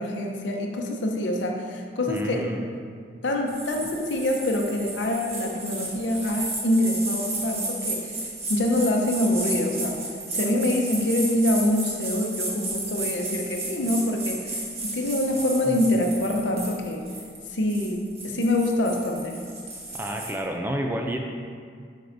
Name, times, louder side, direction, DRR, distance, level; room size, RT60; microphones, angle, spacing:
voice 1, 0.0-2.5 3.2-8.2 8.5-10.0 10.3-17.0 17.5-19.4, left 1 dB, 85° left, 1 dB, 0.7 m, -25 dB
voice 2, 2.1-2.6 15.7-15.8 19.9-21.2, right 1 dB, 10° right, 2 dB, 0.4 m, -29 dB
sound 1, 3.5-20.3, right 2 dB, 35° right, 1.2 m, -33 dB
7.7 x 5.3 x 2.6 m, 2.1 s
head